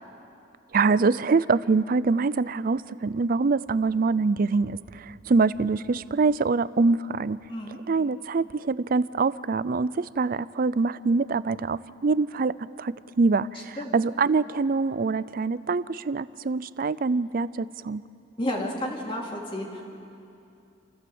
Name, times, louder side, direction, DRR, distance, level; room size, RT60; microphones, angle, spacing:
voice 1, 0.7-7.4 7.9-18.0, right 4 dB, 50° right, 18 dB, 0.4 m, -24 dB
voice 2, 7.5-7.8 13.5-14.0 18.4-19.8, left 1 dB, 30° left, -1 dB, 2.6 m, -32 dB
27.5 x 15.0 x 7.9 m, 2.6 s
head